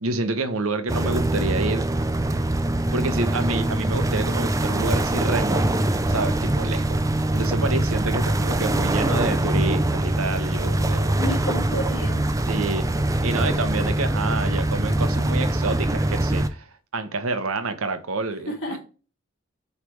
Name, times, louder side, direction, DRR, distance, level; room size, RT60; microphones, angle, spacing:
voice 1, 0.0-1.9 2.9-5.8 6.1-7.0 7.3-11.2 12.5-12.8 13.2-18.8, right 3 dB, 75° right, 1.0 m, -28 dB
sound 1, 0.9-16.5, right 1 dB, 15° right, 0.4 m, -23 dB
voice 2, 11.1-12.2 18.5-18.8, equal, 60° left, 2.9 m, -30 dB
8.3 x 3.3 x 4.7 m
head